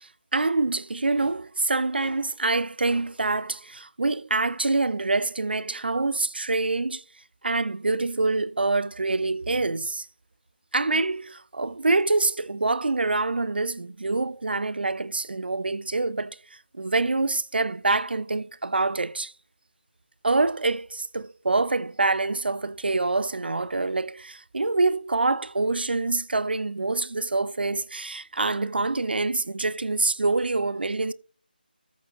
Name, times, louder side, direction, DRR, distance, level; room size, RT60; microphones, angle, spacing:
voice 1, 0.0-7.0 7.4-10.1 10.7-16.4 16.7-19.3 20.2-31.1, right 3 dB, 75° right, 0.8 m, -26 dB
14.0 x 6.2 x 4.1 m
figure-of-eight pair, 170°, 5 cm